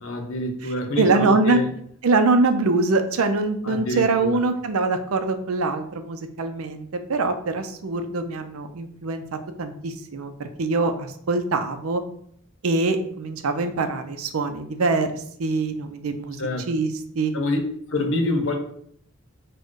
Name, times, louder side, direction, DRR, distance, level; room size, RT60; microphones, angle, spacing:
voice 1, 0.0-1.7 3.6-4.4 16.4-16.7 17.3-17.6 17.9-18.6, left 2 dB, 65° left, 0.7 m, -26 dB
voice 2, 0.6-1.6 2.0-12.0 12.6-16.4 16.7-17.3, right 3 dB, 85° right, 0.5 m, -24 dB
4.3 x 2.2 x 4.6 m
head